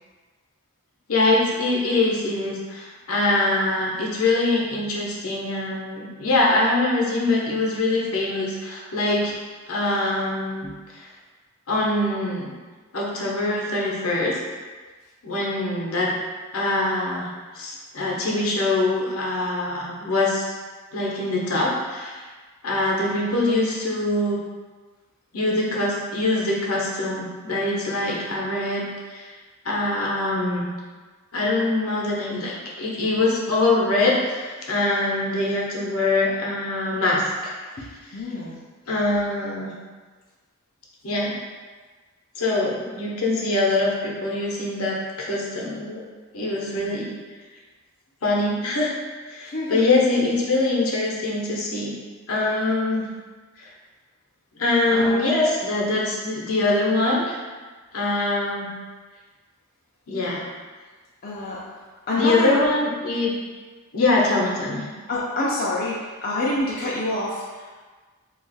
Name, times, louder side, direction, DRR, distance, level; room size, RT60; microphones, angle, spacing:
voice 1, 1.1-9.4 9.7-10.6 10.9-11.1 11.7-12.6 12.9-14.4 15.2-16.1 16.5-17.3 17.5-20.4 20.9-22.2 22.6-24.4 25.3-29.3 29.6-30.7 31.3-38.2 38.9-39.7 41.0-41.4 42.4-46.0 46.3-47.2 48.2-49.0 49.3-52.0 52.3-53.1 53.6-53.7 54.6-57.4 57.9-58.7 60.1-60.5 62.1-63.3 63.9-64.9, left 2 dB, 70° left, -4 dB, 0.8 m, -23 dB
voice 2, 37.8-38.6 46.7-46.9 49.5-49.9 54.9-55.3 61.2-61.6 62.1-62.6 65.1-67.7, left 2 dB, 40° left, -6 dB, 0.5 m, -27 dB
2.9 x 2.4 x 4.0 m, 1.4 s
head